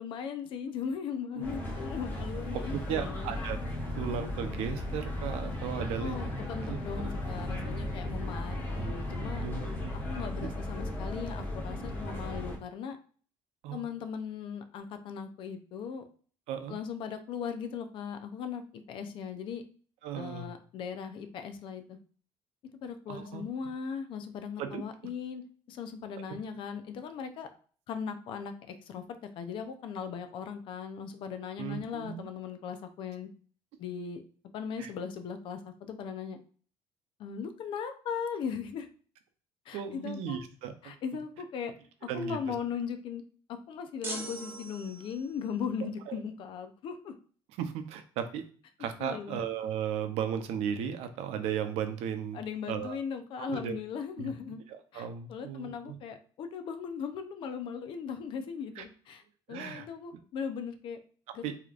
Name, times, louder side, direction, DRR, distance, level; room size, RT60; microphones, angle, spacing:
voice 1, 0.0-3.4 6.0-9.4 10.1-13.0 13.7-16.1 16.7-19.6 20.1-22.0 22.8-27.5 27.9-29.0 29.4-33.3 33.8-34.2 34.5-36.4 37.2-38.9 39.7-40.4 40.8-41.7 42.0-43.2 43.5-47.1 49.0-49.5 52.3-54.6 54.9-59.2 59.5-61.0 61.3-61.4, left 6 dB, 55° left, 8 dB, 0.6 m, -38 dB
sound 1, 1.4-12.6, left 1 dB, 20° left, 1.3 m, -36 dB
voice 2, 2.5-3.6 4.0-6.1 6.7-7.1 8.7-8.9 9.4-10.0 13.6-13.8 16.5-16.8 20.0-20.5 23.1-23.4 24.6-24.8 26.2-26.3 31.6-32.3 34.8-34.9 39.7-40.9 42.1-42.5 46.1-46.2 47.6-48.4 48.8-52.4 52.7-53.0 53.4-53.8 54.2-54.3 54.7-56.0 58.8-58.9 59.5-59.9 61.4-61.5, right 8 dB, 80° right, 8 dB, 0.7 m, -36 dB
sound 2, 44.0-45.4, right 2 dB, 20° right, 0.8 m, -41 dB
4.9 x 2.9 x 2.4 m, 0.43 s
cardioid pair, 155°, 10 cm